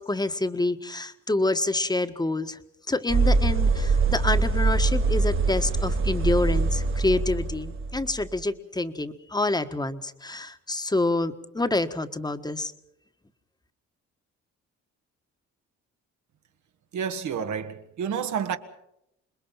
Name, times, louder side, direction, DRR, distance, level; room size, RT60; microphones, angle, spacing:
voice 1, 0.0-2.6 2.9-12.7, left 2 dB, 15° left, 1.5 m, -27 dB
sound 1, 3.1-8.3, right 3 dB, 45° right, 1.7 m, -23 dB
voice 2, 16.9-18.6, right 7 dB, 70° right, 1.8 m, -29 dB
27.5 x 21.0 x 5.7 m
cardioid pair, 90°, 30 cm